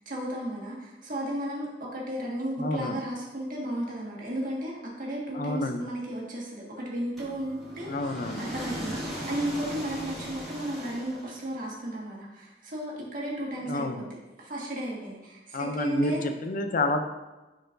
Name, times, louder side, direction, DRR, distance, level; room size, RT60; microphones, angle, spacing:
voice 1, 0.0-7.9 8.4-14.1 14.4-16.2, right 1 dB, 50° right, -3 dB, 1.7 m, -34 dB
voice 2, 2.6-3.0 5.3-5.8 7.9-8.4 13.6-14.1 15.5-17.0, left 2 dB, 50° left, 6 dB, 0.5 m, -29 dB
sound 1, 7.2-11.6, equal, ahead, 2.1 m, -38 dB
10.5 x 4.4 x 2.6 m, 1.1 s
head